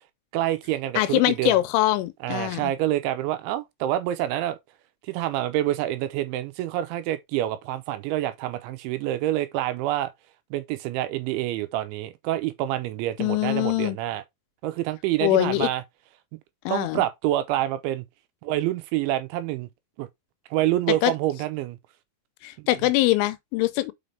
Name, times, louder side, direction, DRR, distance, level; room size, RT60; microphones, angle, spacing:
voice 1, 0.3-1.6 2.2-4.6 5.0-10.1 10.5-14.2 14.6-15.8 16.7-18.0 18.4-19.7 20.0-20.1 20.5-21.8 22.6-22.7, right 14 dB, 80° right, 2.9 m, -27 dB
voice 2, 1.0-2.7 13.2-14.0 15.2-15.7 16.7-17.0 21.0-21.1 22.4-23.9, left 16 dB, 85° left, 3.0 m, -23 dB
6.0 x 5.5 x 3.3 m
omnidirectional pair, 5.6 m